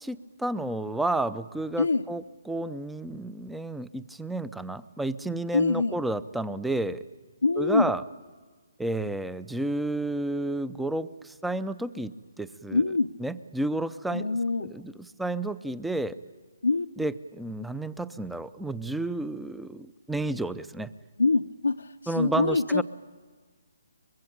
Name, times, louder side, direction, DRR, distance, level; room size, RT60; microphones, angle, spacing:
voice 1, 0.0-7.0 7.6-8.0 8.8-12.8 13.2-16.2 17.0-20.9 22.1-22.8, right 2 dB, 5° right, 16 dB, 0.7 m, -31 dB
voice 2, 5.5-6.0 7.4-7.9 12.7-13.1 14.1-14.7 16.6-16.9 21.2-22.8, left 3 dB, 80° left, 2 dB, 0.8 m, -24 dB
24.5 x 22.5 x 8.8 m, 1.4 s
figure-of-eight pair, 140°, 0 cm